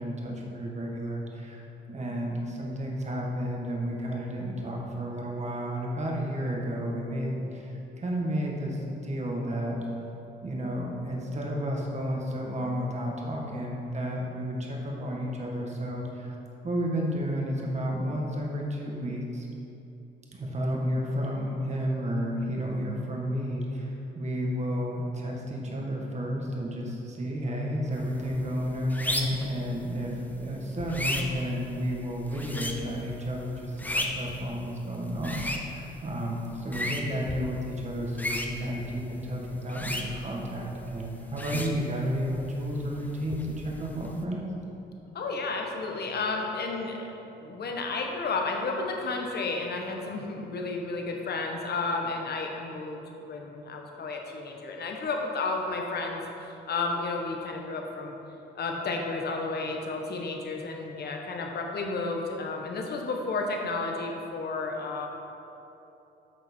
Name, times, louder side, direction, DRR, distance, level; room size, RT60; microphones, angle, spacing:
voice 1, 0.0-1.6 1.9-9.8 10.4-16.3 16.6-19.5 20.3-44.4, equal, 35° right, -2 dB, 1.7 m, -32 dB
sound 1, 27.9-44.2, left 1 dB, 10° left, 0.8 m, -37 dB
voice 2, 45.1-47.1 47.4-53.0 53.3-58.1 58.5-65.1, left 3 dB, 55° left, 2 dB, 1.2 m, -32 dB
9.0 x 6.2 x 4.4 m, 3.0 s
cardioid pair, 90°, 20 cm